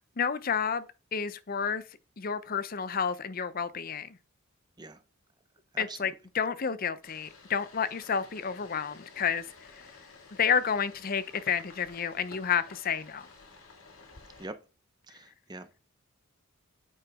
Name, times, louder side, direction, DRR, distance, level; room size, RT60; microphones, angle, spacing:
voice 1, 0.2-0.8 1.1-1.8 2.2-4.2 5.8-9.5 10.4-13.3, left 7 dB, 40° left, 0.5 m, -30 dB
voice 2, 5.7-6.1 14.4-14.5 15.1-15.8, right 2 dB, 20° right, 0.7 m, -43 dB
sound 1, 7.0-14.5, left 4 dB, 70° left, 1.8 m, -52 dB
8.5 x 5.0 x 3.5 m
head